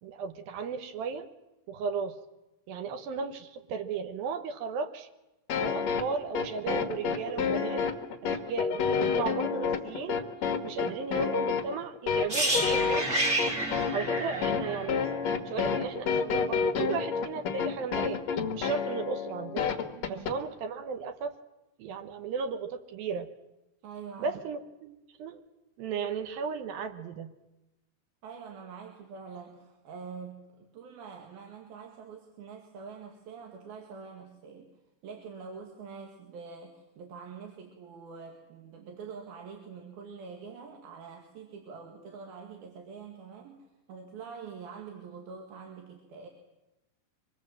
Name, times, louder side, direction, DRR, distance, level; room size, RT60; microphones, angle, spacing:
voice 1, 0.0-1.3 1.7-2.2 2.7-5.1 5.6-7.8 8.2-10.2 10.6-13.1 13.9-15.1 15.5-18.2 18.5-19.6 20.1-21.3 21.8-23.3 24.2-25.4 25.8-27.3, right 5 dB, 75° right, 7 dB, 2.2 m, -35 dB
sound 1, 5.5-20.3, left 6 dB, 90° left, 1.5 m, -29 dB
sound 2, 12.3-16.2 16.4-16.6, right 1 dB, 40° right, 1.0 m, -31 dB
voice 2, 20.0-20.3 23.8-24.4 28.2-34.7 35.0-46.3, right 5 dB, 55° right, 2 dB, 3.4 m, -45 dB
25.0 x 22.5 x 7.6 m, 0.99 s
omnidirectional pair, 5.7 m